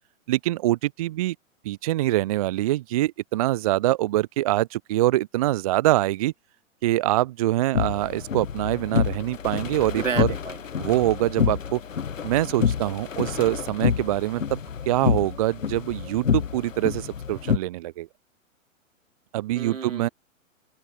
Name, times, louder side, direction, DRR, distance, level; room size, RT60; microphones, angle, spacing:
voice 1, 0.3-1.4 1.6-6.3 6.8-10.3 10.8-11.8 12.2-14.6 14.9-18.1 19.3-20.1, right 15 dB, 30° right, 0.6 m, -24 dB
sound 1, 7.7-17.6, left 7 dB, 70° left, 1.1 m, -28 dB
voice 2, 10.0-10.9 19.6-20.1, right 6 dB, 70° right, 2.3 m, -32 dB
open air
figure-of-eight pair, 110°, 40 cm